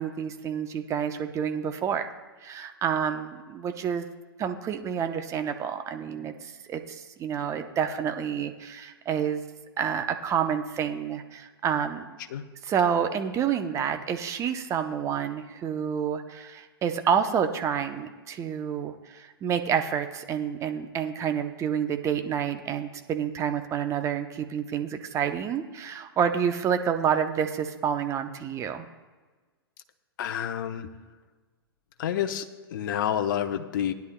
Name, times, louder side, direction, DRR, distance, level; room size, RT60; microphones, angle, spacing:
voice 1, 0.0-2.1 2.4-4.1 4.4-9.4 9.8-12.0 12.6-28.9, right 8 dB, 25° right, 7 dB, 0.9 m, -28 dB
voice 2, 30.2-30.9 32.0-33.9, left 10 dB, 55° left, 7 dB, 0.9 m, -29 dB
19.0 x 10.5 x 2.3 m, 1.3 s
hypercardioid pair, 110°, 13 cm